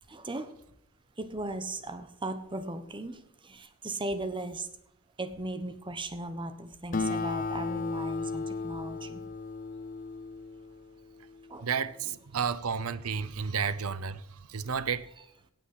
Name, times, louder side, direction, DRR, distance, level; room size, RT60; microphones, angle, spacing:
voice 1, 0.1-0.5 1.2-4.7 5.2-9.2 11.5-11.7, right 2 dB, 20° right, 1.1 m, -37 dB
Acoustic guitar, 6.9-11.8, left 4 dB, 35° left, 0.7 m, -35 dB
voice 2, 11.6-15.1, right 6 dB, 70° right, 0.7 m, -32 dB
18.0 x 6.1 x 6.0 m
head